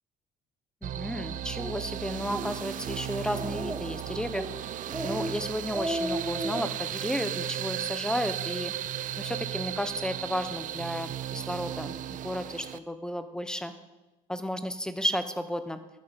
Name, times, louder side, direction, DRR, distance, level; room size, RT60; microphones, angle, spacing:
voice 1, 0.8-4.5 5.0-8.7 9.2-13.7 14.3-15.8, equal, 5° left, 10 dB, 0.9 m, -33 dB
sound 1, 0.8-12.8, right 11 dB, 50° right, 0.5 m, -35 dB
Speech, 1.6-1.7 2.2-2.5 2.9-3.0 3.3-3.9 4.3-4.5 4.9-5.3 5.6-6.6, right 1 dB, 15° right, 1.3 m, -33 dB
12.5 x 9.7 x 5.2 m, 1.1 s
cardioid pair, 110°, 17 cm